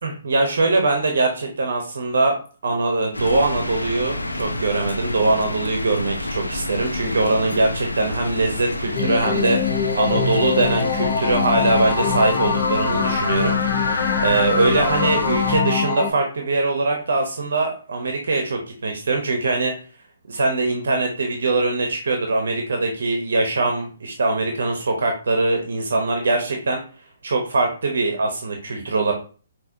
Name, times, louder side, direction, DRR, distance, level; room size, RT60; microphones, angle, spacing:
voice 1, 0.0-9.6 9.9-19.7 20.3-26.8 27.2-29.1, right 3 dB, 60° right, 3 dB, 0.8 m, -22 dB
sound 1, 3.1-15.6, left 1 dB, 90° left, 0.6 m, -29 dB
sound 2, 8.9-16.1, left 6 dB, 40° left, 1.0 m, -23 dB
5.6 x 2.7 x 2.7 m, 0.38 s
figure-of-eight pair, 135°, 0 cm